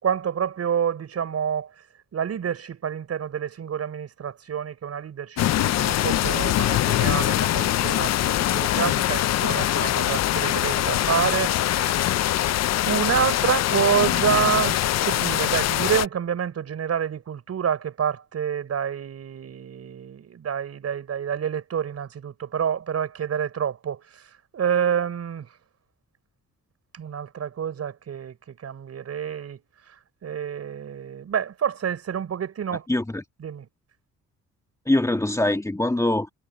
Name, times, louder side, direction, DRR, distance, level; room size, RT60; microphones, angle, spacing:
voice 1, 0.0-1.7 2.1-12.5 12.8-25.5 26.9-29.6 29.9-32.9 33.4-33.7, right 8 dB, 55° right, 5.9 m, -28 dB
sound 1, 5.4-16.1, left 13 dB, 60° left, 0.6 m, -23 dB
voice 2, 32.7-33.2 34.9-36.3, left 1 dB, 10° left, 2.2 m, -23 dB
cardioid pair, 90°, 30 cm